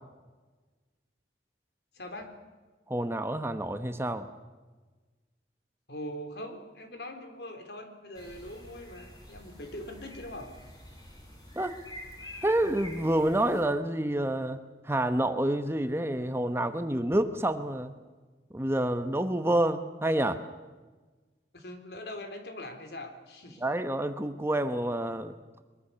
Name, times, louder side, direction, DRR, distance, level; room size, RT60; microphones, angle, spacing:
voice 1, 1.9-2.4 5.9-10.5 21.5-23.7, left 1 dB, 70° left, 6 dB, 3.7 m, -42 dB
voice 2, 2.9-4.3 11.6-11.8 12.4-14.6 14.8-17.9 18.5-20.4 23.6-25.3, right 1 dB, 15° right, 9 dB, 1.0 m, -28 dB
sound 1, 8.1-13.6, left 1 dB, 20° left, 5.7 m, -47 dB
23.0 x 22.5 x 6.9 m, 1.3 s
head